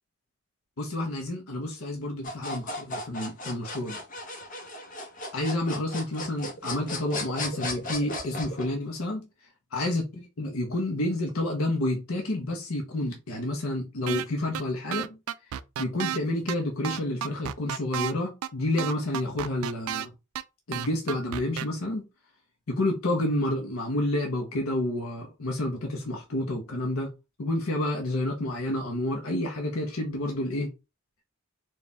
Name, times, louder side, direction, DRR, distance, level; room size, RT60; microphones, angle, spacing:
voice 1, 0.8-4.0 5.3-9.3 9.7-15.2 15.8-20.1 20.7-22.0 22.7-27.1 27.4-30.7, left 1 dB, 80° left, 0.8 m, -29 dB
sound 1, 2.2-8.7, left 2 dB, 40° left, 1.0 m, -36 dB
sound 2, 14.1-14.3 14.5-14.6 14.9-16.2 16.5-16.6 16.8-18.1 18.4-18.5 18.8-20.1 20.4-20.5 20.7-21.7, right 10 dB, 85° right, 0.3 m, -31 dB
4.1 x 2.5 x 3.4 m
head